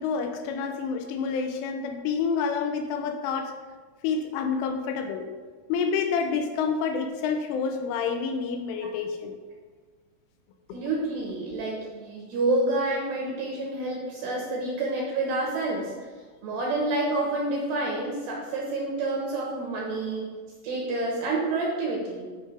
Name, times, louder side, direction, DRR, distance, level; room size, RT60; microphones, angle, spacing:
voice 1, 0.0-3.5 4.0-5.3 5.7-9.4 10.7-10.8, left 5 dB, 85° left, 6 dB, 2.9 m, -28 dB
voice 2, 10.7-15.9 16.4-20.3 20.6-22.3, right 2 dB, 70° right, -2 dB, 2.7 m, -28 dB
13.0 x 5.3 x 3.4 m, 1.5 s
omnidirectional pair, 5.9 m